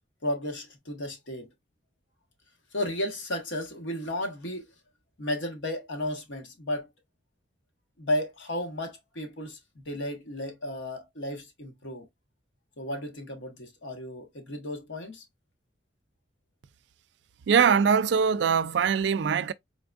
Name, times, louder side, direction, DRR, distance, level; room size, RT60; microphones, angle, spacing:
voice 1, 0.2-1.5 2.7-4.7 5.2-6.9 8.0-12.1 12.8-15.2, left 1 dB, 90° left, 1.3 m, -33 dB
voice 2, 17.5-19.5, right 6 dB, 65° right, 0.3 m, -22 dB
4.0 x 3.5 x 2.4 m
head